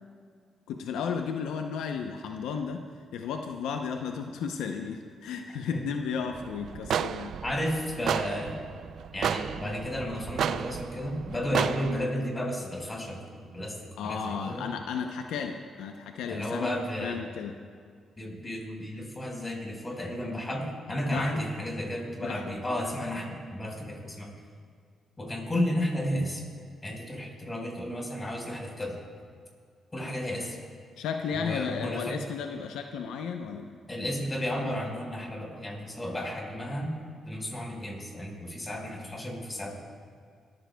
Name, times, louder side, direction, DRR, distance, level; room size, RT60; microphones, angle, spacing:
voice 1, 0.7-2.9 3.1-7.3 14.0-16.7 17.0-17.5 21.1-21.4 22.2-22.4 31.0-33.7, left 6 dB, 90° left, 4 dB, 0.7 m, -34 dB
sound 1, 6.3-12.1, right 9 dB, 70° right, 0.3 m, -33 dB
voice 2, 7.4-8.6 9.1-13.2 13.5-14.7 16.3-17.2 18.2-24.3 25.2-26.4 26.8-29.0 29.9-30.6 31.3-32.2 33.9-36.9 37.3-39.8, left 1 dB, 20° left, 0 dB, 4.5 m, -33 dB
26.5 x 14.0 x 2.3 m, 2.1 s
cardioid pair, 75°, 0 cm